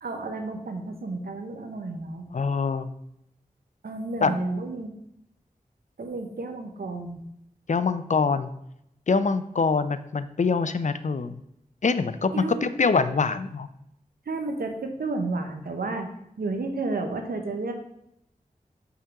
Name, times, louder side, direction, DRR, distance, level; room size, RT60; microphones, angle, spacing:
voice 1, 0.0-2.2 3.8-4.9 6.0-7.2 12.3-12.7 14.3-16.1 16.4-17.7, right 3 dB, 90° right, 5 dB, 0.8 m, -31 dB
voice 2, 2.3-2.9 4.2-4.4 7.7-8.5 9.1-11.4 11.8-13.7, left 4 dB, 55° left, 12 dB, 0.5 m, -24 dB
5.6 x 3.7 x 5.7 m, 0.78 s
cardioid pair, 40°, 15 cm